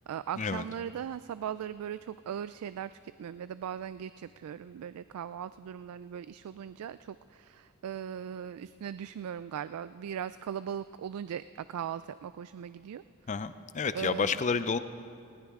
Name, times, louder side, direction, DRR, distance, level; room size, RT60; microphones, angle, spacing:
voice 1, 0.0-2.9 3.2-13.0 13.9-14.4, right 8 dB, 85° right, 14 dB, 0.3 m, -39 dB
voice 2, 13.3-14.8, left 5 dB, 35° left, 13 dB, 0.5 m, -30 dB
19.5 x 18.5 x 3.6 m, 2.4 s
head